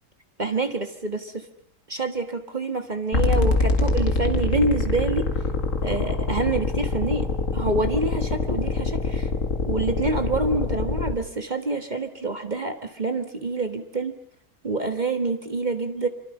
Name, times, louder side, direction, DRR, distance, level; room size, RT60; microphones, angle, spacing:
voice 1, 0.4-1.5 1.9-5.2 5.8-7.3 7.5-9.3 9.7-14.2 14.6-16.1, right 3 dB, 25° right, 7 dB, 1.4 m, -27 dB
sound 1, 3.1-11.1, left 3 dB, 40° left, 2.1 m, -24 dB
27.5 x 24.5 x 5.5 m, 0.65 s
omnidirectional pair, 2.3 m